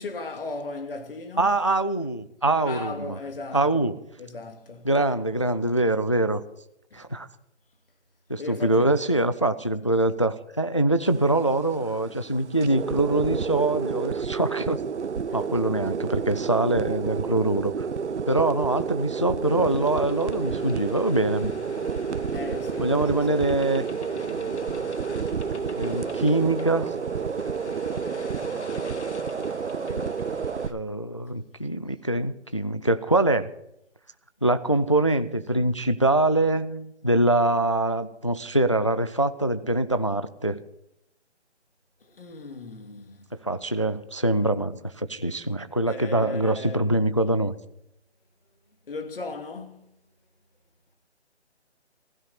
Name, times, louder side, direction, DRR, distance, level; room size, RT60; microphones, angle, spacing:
voice 1, 0.0-1.6 2.5-3.8 4.2-4.9 6.9-7.0 8.4-9.0 15.3-15.4 22.3-23.2 29.8-30.2 42.0-43.3 45.9-46.9 48.9-50.0, left 3 dB, 50° left, 2.7 m, -37 dB
voice 2, 1.4-3.2 3.5-4.0 4.8-6.4 6.9-7.3 8.3-14.8 15.3-17.9 18.3-21.5 22.8-23.9 25.7-26.9 30.7-33.5 34.4-40.6 43.4-47.5, right 2 dB, 30° left, 0.4 m, -24 dB
sound 1, 11.0-30.7, right 6 dB, 75° right, 1.0 m, -30 dB
sound 2, 19.4-30.7, left 4 dB, 75° left, 1.7 m, -44 dB
16.0 x 15.5 x 4.2 m
hypercardioid pair, 170°, 35 cm